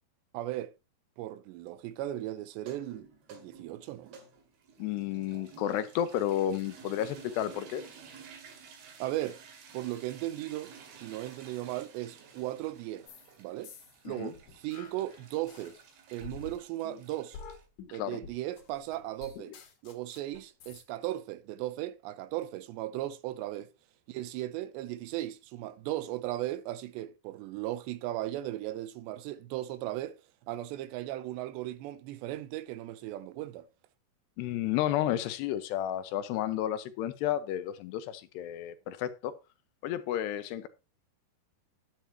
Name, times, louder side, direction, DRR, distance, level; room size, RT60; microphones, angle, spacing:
voice 1, 0.3-0.7 1.2-4.1 9.0-9.4 9.7-13.1 13.4-13.7 14.1-15.8 16.1-17.4 17.9-19.5 19.8-23.7 24.1-30.2 30.5-33.7, right 15 dB, 85° right, 3.0 m, -37 dB
sound 1, 2.5-17.6, right 6 dB, 65° right, 3.6 m, -53 dB
voice 2, 4.8-7.8 14.1-14.3 17.9-18.2 34.4-39.3 39.8-40.7, left 11 dB, 80° left, 2.9 m, -32 dB
sound 2, 13.1-13.3 13.6-15.8 16.2-20.8, left 5 dB, 55° left, 3.1 m, -49 dB
10.5 x 9.2 x 3.0 m
omnidirectional pair, 5.0 m